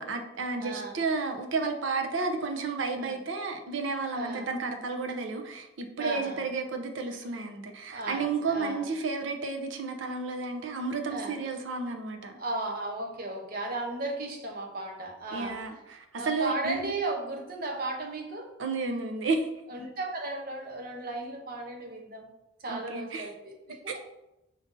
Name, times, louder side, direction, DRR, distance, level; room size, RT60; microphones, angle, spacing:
voice 1, 0.0-12.3 15.3-16.9 18.6-19.5 22.7-23.3 23.9-24.0, right 4 dB, 80° right, 5 dB, 0.6 m, -32 dB
voice 2, 0.6-0.9 2.9-3.2 4.1-4.5 6.0-6.4 7.9-8.8 11.1-11.3 12.4-15.6 16.2-18.5 19.7-22.3 22.6-24.0, right 2 dB, 50° right, 2 dB, 0.8 m, -35 dB
5.2 x 2.6 x 3.7 m, 0.91 s
head